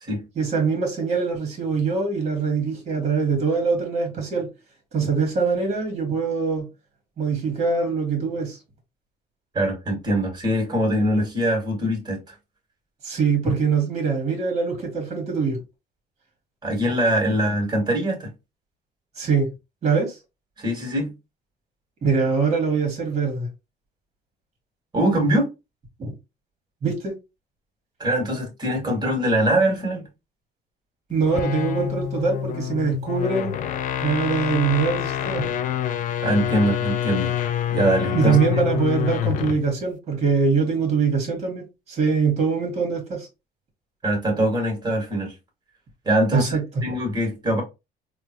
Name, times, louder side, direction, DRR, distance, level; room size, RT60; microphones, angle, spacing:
voice 1, 0.4-4.5 4.9-6.7 7.2-8.6 13.0-15.6 16.8-16.9 19.2-19.5 19.8-20.2 22.0-23.5 26.0-26.1 26.8-27.1 31.1-33.6 34.0-35.5 38.2-43.3 46.3-46.6, right 5 dB, 40° right, 1.7 m, -23 dB
voice 2, 9.5-12.3 16.6-18.3 20.6-21.1 24.9-25.5 28.0-30.1 36.2-37.3 37.7-38.4 44.0-45.3 46.1-47.6, right 1 dB, 25° right, 1.9 m, -23 dB
sound 1, 31.2-39.7, left 10 dB, 50° left, 0.4 m, -26 dB
3.7 x 2.3 x 2.9 m
cardioid pair, 110°, 17 cm